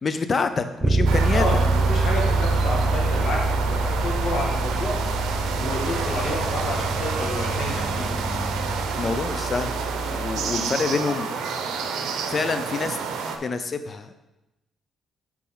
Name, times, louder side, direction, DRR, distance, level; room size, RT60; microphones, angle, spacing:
voice 1, 0.0-1.5 9.0-9.8 10.1-11.3 12.3-13.0 13.4-14.1, left 4 dB, 40° left, 10 dB, 0.6 m, -26 dB
Bass guitar, 0.8-10.6, right 2 dB, 30° right, 0.6 m, -26 dB
sound 1, 1.1-13.4, right 5 dB, 85° right, 0.7 m, -29 dB
voice 2, 1.3-4.9 5.6-8.1 10.5-10.8, left 1 dB, 65° left, -2 dB, 2.0 m, -30 dB
sound 2, 1.5-8.8, equal, 80° left, 2.1 m, -35 dB
8.3 x 4.4 x 3.9 m, 0.98 s
cardioid pair, 90°, 0 cm